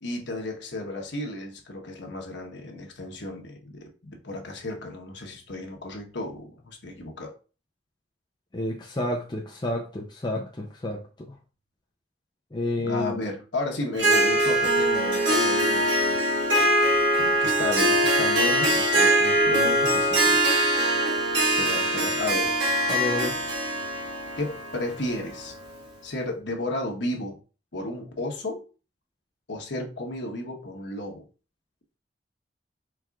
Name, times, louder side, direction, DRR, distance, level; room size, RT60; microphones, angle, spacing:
voice 1, 0.0-7.3 12.8-16.2 17.2-20.4 21.6-22.5 24.4-25.5 26.0-27.4 27.7-28.6 29.5-31.2, left 2 dB, 90° left, 1.2 m, -33 dB
voice 2, 8.5-11.4 12.5-13.2 22.9-23.5, left 1 dB, 25° left, 0.5 m, -30 dB
Harp, 13.9-25.8, right 1 dB, 80° right, 1.5 m, -23 dB
4.6 x 3.6 x 2.4 m
head